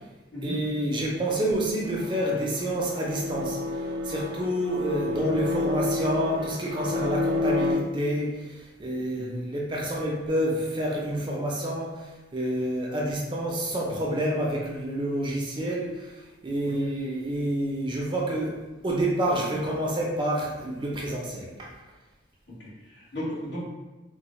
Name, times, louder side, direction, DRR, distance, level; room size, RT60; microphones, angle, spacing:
voice 1, 0.4-3.6 4.0-12.1 12.3-18.6 18.8-21.7, right 1 dB, 25° right, -2 dB, 0.4 m, -28 dB
sound 1, 1.8-7.7, left 2 dB, 85° right, 0.5 m, -30 dB
voice 2, 22.6-23.7, equal, 65° left, -8 dB, 1.3 m, -35 dB
3.8 x 2.0 x 3.0 m, 1.1 s
head